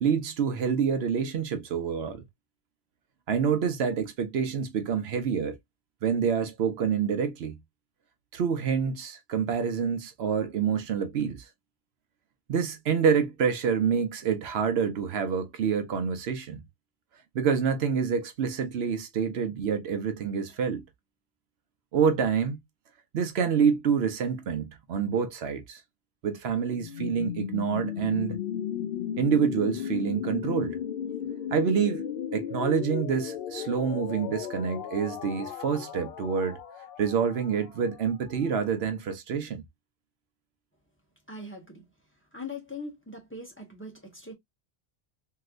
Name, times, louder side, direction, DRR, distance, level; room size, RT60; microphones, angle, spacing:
voice 1, 0.0-2.2 3.3-5.6 6.0-7.6 8.3-11.4 12.5-16.6 17.3-20.8 21.9-22.6 23.1-25.8 26.2-28.4 29.2-30.8 31.5-32.0 32.3-36.6 37.0-39.6, right 7 dB, 80° right, 0.9 m, -27 dB
sound 1, 26.7-38.5, left 9 dB, 65° left, 0.7 m, -35 dB
voice 2, 41.3-41.8 42.3-44.3, left 2 dB, 10° left, 1.0 m, -41 dB
3.1 x 2.8 x 2.4 m
omnidirectional pair, 1.1 m